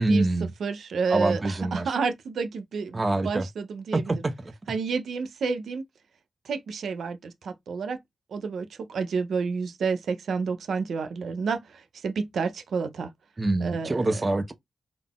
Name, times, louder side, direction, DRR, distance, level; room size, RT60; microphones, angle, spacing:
voice 1, 0.0-0.5 1.1-1.9 2.9-3.5 3.9-4.5 13.4-14.5, right 2 dB, 20° right, 0.4 m, -25 dB
voice 2, 0.6-4.2 4.7-5.8 6.4-8.0 8.3-13.1 13.6-14.2, right 5 dB, 90° right, 0.6 m, -30 dB
3.8 x 2.4 x 3.6 m
wide cardioid pair, 175°, 0 cm